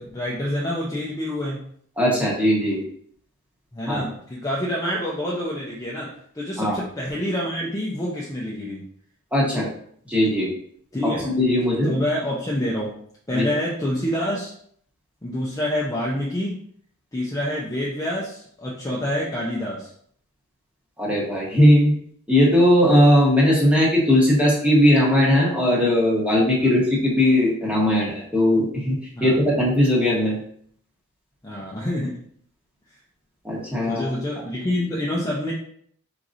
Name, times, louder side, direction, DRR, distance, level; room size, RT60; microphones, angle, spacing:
voice 1, 0.0-1.6 3.7-8.8 10.9-11.3 11.8-12.9 13.3-14.5 15.2-16.6 17.1-19.9 26.6-26.7 29.2-29.4 31.4-32.2 33.9-35.5, left 1 dB, 15° left, -5 dB, 0.6 m, -27 dB
voice 2, 2.0-2.8 3.8-4.1 6.6-6.8 9.3-9.7 10.1-10.5 11.2-11.9 13.3-13.4 21.0-21.9 22.3-30.4 33.4-34.0, left 1 dB, 5° right, -5 dB, 1.2 m, -18 dB
4.6 x 3.8 x 2.6 m, 0.62 s
head